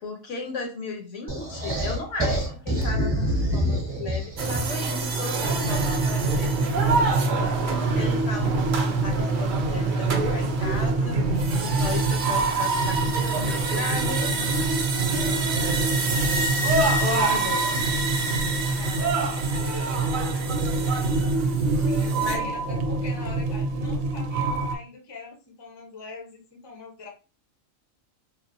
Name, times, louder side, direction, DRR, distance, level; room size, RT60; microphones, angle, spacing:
voice 1, 0.0-7.6 7.9-11.2 11.6-14.4 17.0-17.8 22.2-22.5, left 4 dB, 65° left, 3 dB, 1.0 m, -36 dB
sound 1, 1.3-4.8, equal, 20° right, 1.0 m, -26 dB
sound 2, 4.4-22.4, right 3 dB, 60° right, 0.5 m, -27 dB
sound 3, 5.4-24.8, right 3 dB, 80° right, 1.0 m, -26 dB
voice 2, 18.6-20.2 21.7-27.1, left 4 dB, 25° left, 0 dB, 0.6 m, -43 dB
3.8 x 2.0 x 2.6 m, 0.32 s
omnidirectional pair, 1.4 m